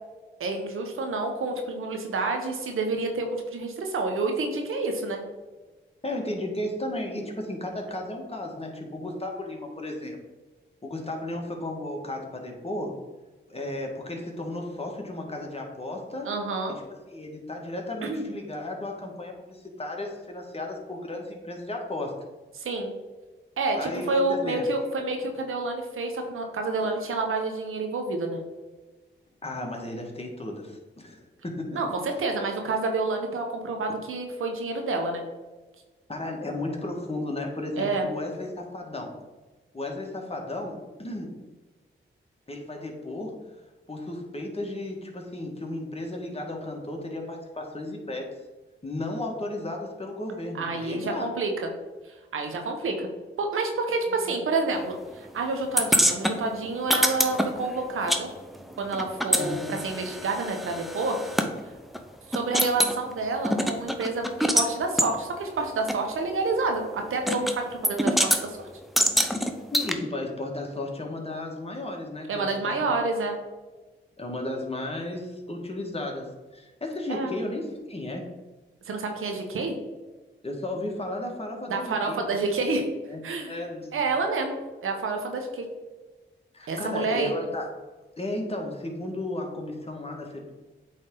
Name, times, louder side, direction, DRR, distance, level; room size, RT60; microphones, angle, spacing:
voice 1, 0.4-5.2 16.2-16.8 18.0-18.3 22.5-22.9 23.6-28.4 31.7-35.2 37.8-38.1 50.6-51.5 52.0-53.1 53.4-58.3 58.8-61.2 62.3-64.3 64.5-68.7 72.3-73.4 77.1-77.3 78.8-79.7 81.7-82.9 83.2-83.6 83.9-85.7 86.7-87.3, right 3 dB, 80° right, 3 dB, 1.0 m, -28 dB
voice 2, 6.0-10.2 10.8-13.0 13.5-16.3 17.1-22.1 23.8-24.7 29.4-31.8 36.1-39.1 39.7-41.3 42.5-43.4 43.9-48.3 48.8-51.3 59.4-59.8 69.7-72.7 74.2-78.3 80.4-82.5 83.1-84.0 86.5-87.7 88.2-90.5, left 1 dB, 30° left, 1 dB, 1.7 m, -34 dB
sound 1, 55.8-58.2 58.5-61.5 61.9-62.0 62.3-63.0 63.4-64.7 65.0-65.1 65.9-66.0 67.3-67.6 67.8-68.4 69.0-69.9, equal, ahead, 0.8 m, -25 dB
8.3 x 3.6 x 3.9 m, 1.2 s
supercardioid pair, 45°, 21 cm